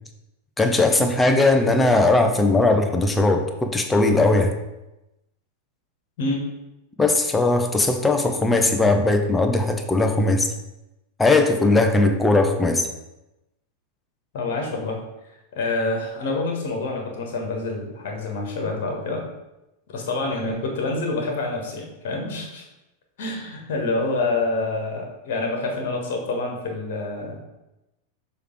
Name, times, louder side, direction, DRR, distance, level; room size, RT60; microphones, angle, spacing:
voice 1, 0.6-4.5 7.0-10.5 11.2-12.9, left 2 dB, 10° left, 5 dB, 0.7 m, -19 dB
voice 2, 14.3-15.0 15.5-19.2 19.9-22.6 23.2-27.4, left 2 dB, 55° left, 1 dB, 1.5 m, -27 dB
6.8 x 3.2 x 4.7 m, 0.95 s
figure-of-eight pair, 90°, 0 cm